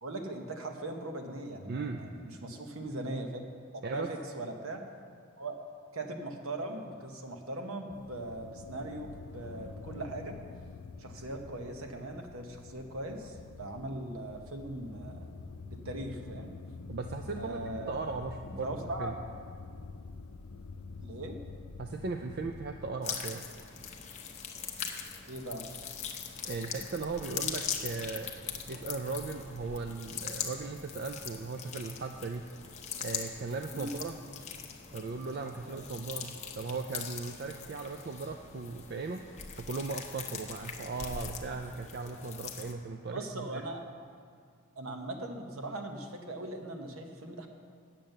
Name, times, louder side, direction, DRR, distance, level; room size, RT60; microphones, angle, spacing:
voice 1, 0.0-3.4 3.7-4.8 5.4-5.5 5.9-10.4 11.0-15.3 15.7-16.5 17.4-18.3 18.6-19.1 21.0-21.4 25.3-25.7 33.7-33.9 35.7-35.9 42.2-42.3 43.1-43.8 44.8-47.5, right 2 dB, 65° right, 4 dB, 1.0 m, -40 dB
voice 2, 1.7-2.1 3.8-4.1 16.9-17.6 17.9-19.1 21.8-23.5 26.4-32.5 33.0-34.2 34.9-39.2 39.6-43.6, right 4 dB, 45° right, 5 dB, 0.4 m, -38 dB
sound 1, 7.9-22.9, left 4 dB, 70° left, 0.5 m, -47 dB
sound 2, 23.0-42.7, left 7 dB, 30° left, 0.7 m, -41 dB
8.9 x 7.4 x 6.6 m, 2.1 s
head